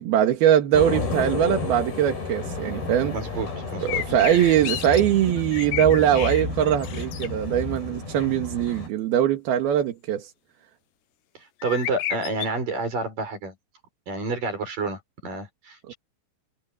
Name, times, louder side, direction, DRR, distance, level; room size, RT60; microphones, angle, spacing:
voice 1, 0.0-3.1 3.8-10.3 15.9-16.0, right 10 dB, 70° right, 3.5 m, -21 dB
sound 1, 0.7-8.9, left 3 dB, 60° left, 10.0 m, -32 dB
voice 2, 3.1-4.1 11.6-13.5 14.1-16.0, right 3 dB, 50° right, 8.5 m, -29 dB
sound 2, 3.9-5.0 5.4-6.4 6.8-7.3 11.6-12.5, left 12 dB, 80° left, 3.4 m, -31 dB
omnidirectional pair, 4.8 m